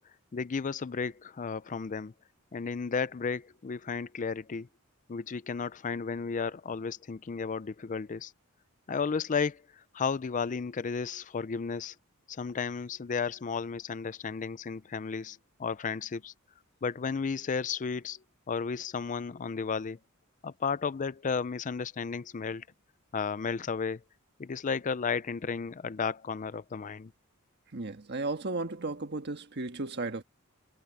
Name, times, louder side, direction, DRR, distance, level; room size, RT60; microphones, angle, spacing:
voice 1, 0.3-2.1 2.5-4.7 5.1-8.3 8.9-11.9 12.3-16.3 16.8-18.2 18.5-20.0 20.4-22.7 23.1-24.0 24.4-27.1, left 5 dB, 35° left, 0.4 m, -33 dB
voice 2, 27.7-30.2, right 3 dB, 50° right, 1.5 m, -34 dB
head